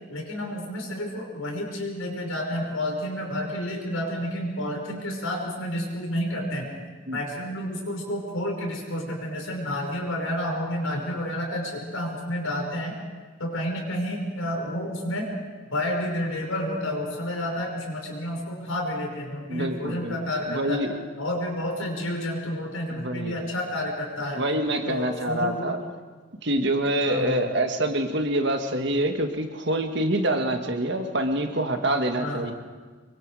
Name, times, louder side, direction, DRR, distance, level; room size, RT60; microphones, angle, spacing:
voice 1, 0.1-6.7 7.1-12.9 13.4-15.4 15.7-20.8 21.2-24.4 24.8-25.8 27.0-27.5 32.2-32.4, left 1 dB, 85° left, 1 dB, 5.6 m, -30 dB
voice 2, 19.5-20.2 20.5-20.9 22.9-23.4 24.3-25.8 26.4-32.5, right 1 dB, 55° right, 5 dB, 1.8 m, -26 dB
25.0 x 23.0 x 4.9 m, 1.4 s
head